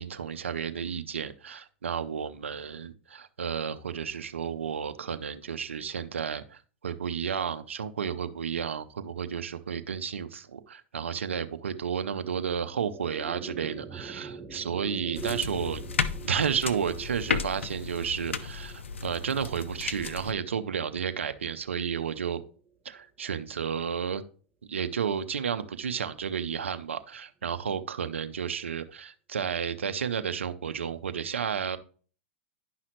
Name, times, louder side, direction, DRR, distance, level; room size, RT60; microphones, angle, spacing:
voice 1, 0.0-6.6 6.8-15.8 16.2-22.4 22.8-24.2 24.7-31.8, right 7 dB, 85° right, 0.7 m, -32 dB
sound 1, 12.2-22.7, right 5 dB, 10° right, 1.1 m, -45 dB
sound 2, 15.1-20.3, left 5 dB, 90° left, 0.6 m, -34 dB
10.0 x 5.6 x 3.1 m
hypercardioid pair, 105°, 6 cm